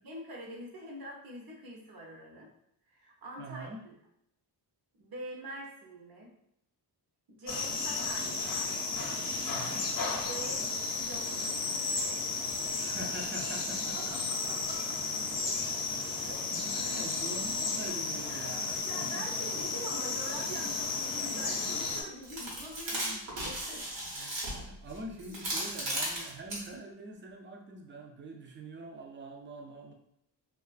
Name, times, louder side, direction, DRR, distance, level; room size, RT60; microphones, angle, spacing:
voice 1, 0.0-2.5 2.9-4.0 4.9-6.3 7.3-8.6 10.3-10.7 11.0-12.1 13.9-15.0 16.2-16.4 16.8-17.1 18.2-23.2 23.4-23.9 25.1-25.2, right 1 dB, 55° right, -1 dB, 0.8 m, -45 dB
voice 2, 3.4-3.8 9.5-9.9 12.8-14.2 15.9-19.3 22.9-23.2 24.0-29.9, right 2 dB, 30° right, 2 dB, 0.4 m, -45 dB
sound 1, 7.5-22.0, left 4 dB, 50° left, 0.7 m, -33 dB
sound 2, 21.8-21.9 22.2-26.7, right 1 dB, 80° right, 1.1 m, -36 dB
2.3 x 2.3 x 2.4 m, 0.74 s
cardioid pair, 110°, 43 cm